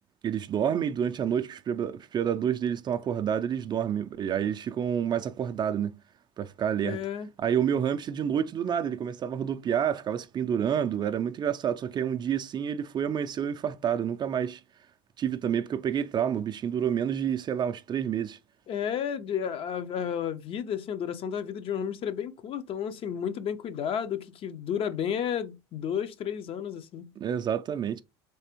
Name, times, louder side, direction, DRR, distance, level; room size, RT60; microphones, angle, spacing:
voice 1, 0.2-5.9 6.4-7.0 7.4-14.6 15.2-18.4 27.2-28.0, right 8 dB, 35° right, 0.4 m, -28 dB
voice 2, 6.8-7.3 18.7-27.1, left 8 dB, 45° left, 0.5 m, -32 dB
3.4 x 3.3 x 2.9 m
hypercardioid pair, 85°, 13 cm